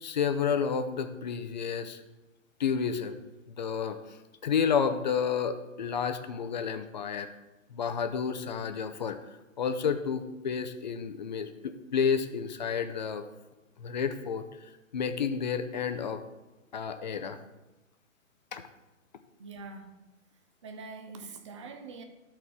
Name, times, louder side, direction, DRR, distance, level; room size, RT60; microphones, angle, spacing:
voice 1, 0.0-2.0 2.6-3.2 3.6-4.0 4.4-7.3 7.7-9.2 9.6-13.2 13.8-14.4 14.9-16.2 16.7-17.4 18.5-18.6, left 6 dB, 35° left, 8 dB, 0.5 m, -30 dB
voice 2, 19.4-19.9 20.6-22.0, right 4 dB, 25° right, 6 dB, 0.5 m, -44 dB
12.5 x 4.3 x 4.7 m, 1.1 s
hypercardioid pair, 145°, 40 cm